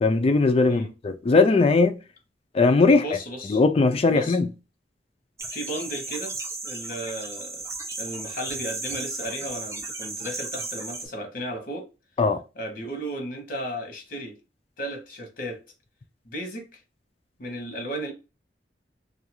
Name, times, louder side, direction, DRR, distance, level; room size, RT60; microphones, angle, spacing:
voice 1, 0.0-2.0 2.5-3.0 3.5-4.5 12.2-12.4, left 3 dB, 35° left, 0.4 m, -19 dB
voice 2, 2.9-3.6 4.1-4.4 5.5-6.3 6.6-7.6 8.0-11.9 12.5-14.4 14.8-15.6 16.2-16.8 17.4-18.1, equal, 55° left, 1.0 m, -34 dB
sound 1, 5.4-11.1, right 3 dB, 15° right, 0.6 m, -35 dB
2.5 x 2.3 x 2.9 m
head